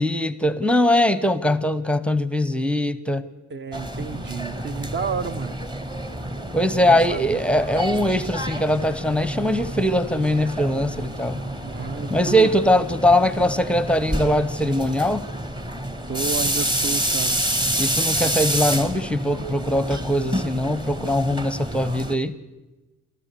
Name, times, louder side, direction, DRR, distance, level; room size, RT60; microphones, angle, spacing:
voice 1, 0.0-3.2 6.5-11.4 12.1-15.3 17.8-22.3, left 1 dB, 5° left, 0.7 m, -21 dB
voice 2, 3.5-5.6 6.8-7.4 11.6-12.5 16.1-17.4 18.2-18.4, right 6 dB, 40° right, 0.7 m, -31 dB
sound 1, 3.7-22.2, right 1 dB, 15° right, 1.2 m, -28 dB
30.0 x 13.5 x 6.7 m
cardioid pair, 150°, 29 cm